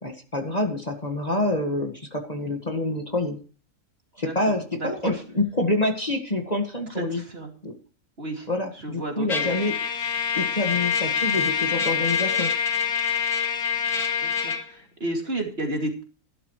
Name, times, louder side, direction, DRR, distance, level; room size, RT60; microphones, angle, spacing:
voice 1, 0.0-3.4 4.2-7.2 7.6-7.7 8.5-9.8 10.4-12.5, left 2 dB, 25° left, 4 dB, 1.9 m, -27 dB
voice 2, 4.8-5.2 6.9-7.5 8.2-8.5 8.7-9.6 11.0-11.1 14.2-16.0, right 1 dB, 40° right, 2 dB, 2.8 m, -32 dB
Trumpet, 9.3-14.6, left 6 dB, 80° left, 2.8 m, -25 dB
16.5 x 12.0 x 3.2 m, 0.38 s
omnidirectional pair, 1.6 m